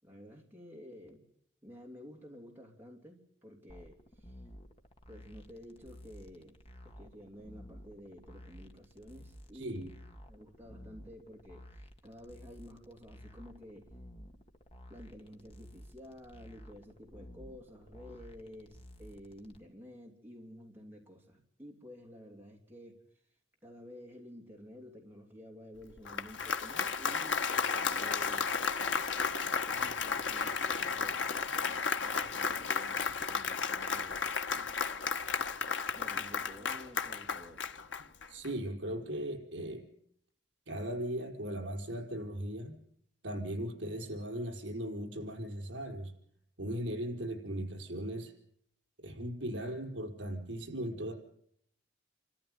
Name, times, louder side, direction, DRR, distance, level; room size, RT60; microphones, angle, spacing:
voice 1, 0.0-1.3 1.6-4.4 5.1-6.6 6.8-9.9 10.3-13.9 14.9-23.0 23.6-28.5 29.7-34.3 35.9-37.7, equal, 10° right, 0 dB, 3.0 m, -51 dB
sound 1, 3.7-19.6, equal, 30° left, 1.8 m, -53 dB
voice 2, 9.5-9.9 38.3-39.8 40.7-42.8 43.2-46.1 46.6-48.3 49.0-51.1, right 1 dB, 75° right, 2 dB, 5.1 m, -38 dB
Applause, 25.9-38.5, left 5 dB, 85° left, 1.2 m, -33 dB
27.5 x 14.0 x 9.6 m, 0.70 s
head